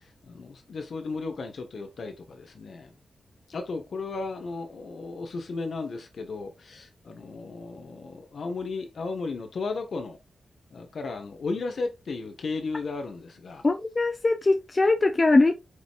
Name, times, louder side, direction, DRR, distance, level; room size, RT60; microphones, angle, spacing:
voice 1, 0.2-2.9 3.5-10.2 10.7-13.6, left 3 dB, 55° left, 1.6 m, -34 dB
voice 2, 13.6-15.6, left 2 dB, 25° left, 0.6 m, -21 dB
8.2 x 5.2 x 2.6 m
wide cardioid pair, 170°, 0 cm